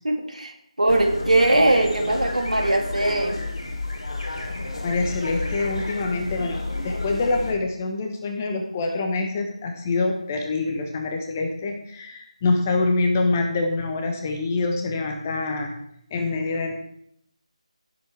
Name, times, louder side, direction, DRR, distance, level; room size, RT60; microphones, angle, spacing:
voice 1, 0.0-3.4, right 2 dB, 80° right, 3 dB, 2.2 m, -21 dB
sound 1, 0.9-7.5, left 2 dB, 50° left, 2.7 m, -31 dB
voice 2, 4.8-6.6 6.8-15.7 16.1-16.7, left 3 dB, 20° left, 3 dB, 1.1 m, -25 dB
16.5 x 7.5 x 3.4 m, 0.72 s
figure-of-eight pair, 160°, 4 cm